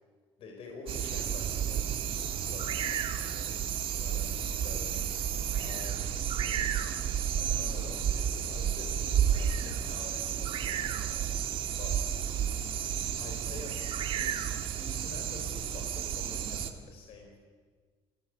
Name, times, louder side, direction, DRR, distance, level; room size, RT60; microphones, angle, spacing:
voice 1, 0.4-5.3 5.6-6.1 7.4-11.3 11.8-12.1 13.2-14.4 14.8-17.4, left 3 dB, 60° left, 2 dB, 4.7 m, -47 dB
sound 1, 0.9-16.7, right 9 dB, 55° right, 1.8 m, -32 dB
voice 2, 5.3-6.8 12.2-13.0 16.3-16.9, right 1 dB, 35° right, -6 dB, 7.1 m, -55 dB
29.0 x 17.0 x 8.0 m, 1.5 s
cardioid pair, 150°, 11 cm